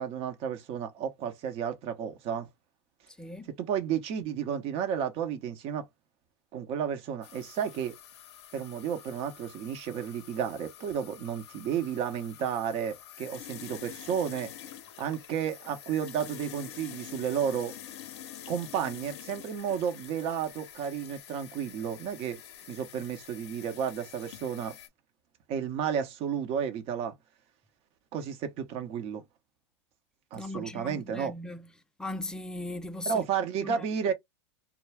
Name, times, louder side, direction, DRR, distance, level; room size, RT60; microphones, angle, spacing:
voice 1, 0.0-2.5 3.6-5.9 6.5-8.0 8.5-14.5 15.0-17.7 18.5-22.4 22.7-24.8 25.5-27.1 28.1-29.2 30.3-31.3 33.1-34.1, right 8 dB, 40° right, 0.8 m, -32 dB
voice 2, 3.2-3.5 30.3-31.7 32.0-33.2 33.6-33.8, left 2 dB, 5° left, 0.4 m, -38 dB
sound 1, 7.2-24.9, left 11 dB, 65° left, 0.6 m, -47 dB
2.3 x 2.0 x 3.3 m
hypercardioid pair, 110°, 15 cm